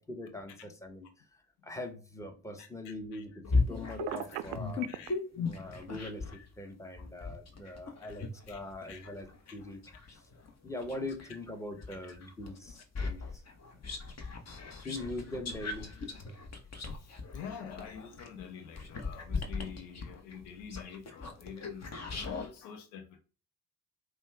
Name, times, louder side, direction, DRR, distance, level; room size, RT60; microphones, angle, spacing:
voice 1, 0.1-1.2 1.6-4.9 5.3-9.8 10.1-10.2 10.6-13.4 14.8-15.9, left 2 dB, 5° left, 1.0 m, -42 dB
voice 2, 2.6-3.2 4.1-4.4 4.9-5.1 6.3-6.5 7.6-8.2 8.5-8.6 8.9-9.1 12.0-12.1 13.7-14.2 17.0-23.2, left 7 dB, 75° left, 0.8 m, -47 dB
sound 1, 3.4-6.4 7.0-11.3 11.8-22.5, left 3 dB, 30° left, 1.0 m, -37 dB
Telephone, 4.0-5.1, right 15 dB, 60° right, 0.5 m, -37 dB
5.2 x 2.3 x 3.3 m
figure-of-eight pair, 45°, 49 cm